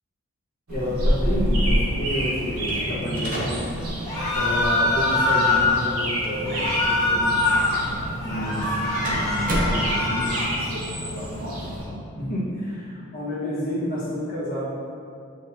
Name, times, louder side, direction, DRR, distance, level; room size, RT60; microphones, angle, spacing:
voice 1, 0.7-3.7 4.3-7.4 8.2-14.7, equal, 40° left, -8 dB, 1.3 m, -30 dB
sound 1, 0.7-11.8, equal, 85° right, 1.2 m, -28 dB
sound 2, 2.6-10.4, equal, 40° right, 0.9 m, -34 dB
sound 3, 4.1-5.8 6.5-7.8 8.2-10.5, left 2 dB, 15° left, 1.0 m, -23 dB
8.2 x 4.3 x 2.8 m, 2.5 s
head